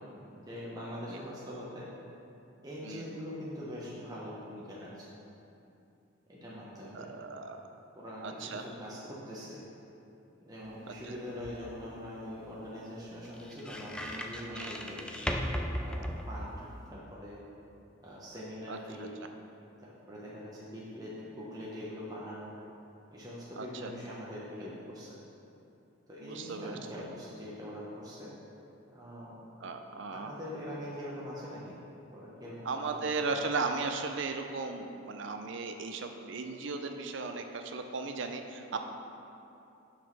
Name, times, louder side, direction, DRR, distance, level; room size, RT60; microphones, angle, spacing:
voice 1, 0.1-1.9 2.6-5.1 6.3-7.1 7.9-9.6 10.5-15.0 15.8-16.5 16.9-17.4 18.0-19.1 19.8-22.5 23.1-25.1 26.1-28.3 28.9-29.3 30.1-31.8 32.1-33.4, equal, 20° right, -7 dB, 0.9 m, -43 dB
voice 2, 6.9-7.6 8.2-8.6 11.1-11.2 14.5-14.9 18.7-19.1 23.6-23.9 26.2-26.8 29.6-30.3 32.6-38.8, right 4 dB, 60° right, 5 dB, 0.5 m, -36 dB
sound 1, 10.6-16.9, equal, 5° left, 0.3 m, -39 dB
5.9 x 4.9 x 6.0 m, 2.7 s
head